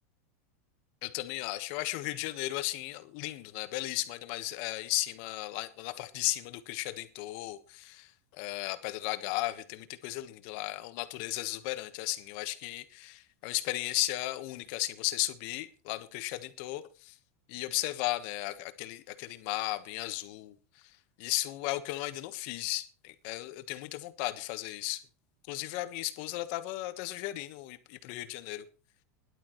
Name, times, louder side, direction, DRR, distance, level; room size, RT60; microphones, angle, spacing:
voice 1, 1.0-17.2 17.5-20.6 21.2-25.0 25.5-28.6, left 17 dB, 50° left, 1.3 m, -35 dB
18.5 x 11.5 x 3.1 m
supercardioid pair, 155°, 8 cm